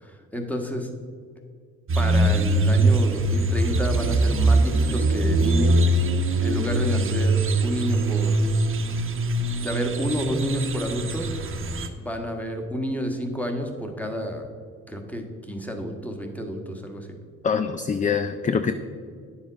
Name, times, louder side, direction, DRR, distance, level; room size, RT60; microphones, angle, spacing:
voice 1, 0.0-0.9 1.9-5.9 6.4-8.4 9.6-11.3 12.0-14.5 14.9-17.1, equal, 5° left, 3 dB, 1.4 m, -30 dB
sound 1, 1.9-11.9, right 2 dB, 45° right, 1.0 m, -22 dB
voice 2, 17.4-18.7, left 6 dB, 25° left, 10 dB, 0.4 m, -24 dB
9.8 x 7.2 x 5.1 m, 2.1 s
cardioid pair, 90°, 30 cm